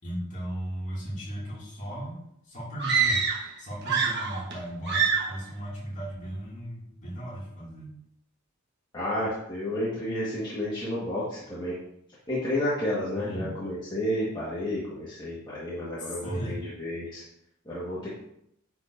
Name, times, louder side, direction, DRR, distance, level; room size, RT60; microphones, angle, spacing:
voice 1, 0.0-7.9 13.1-13.5 16.0-16.5, equal, 35° left, -6 dB, 2.4 m, -36 dB
sound 1, 2.8-3.5 3.8-4.6 4.9-5.4, right 6 dB, 55° right, 1.3 m, -25 dB
voice 2, 8.9-11.8 12.3-17.2 17.6-18.1, left 1 dB, 20° left, -9 dB, 1.6 m, -31 dB
9.3 x 4.7 x 2.7 m, 0.75 s
head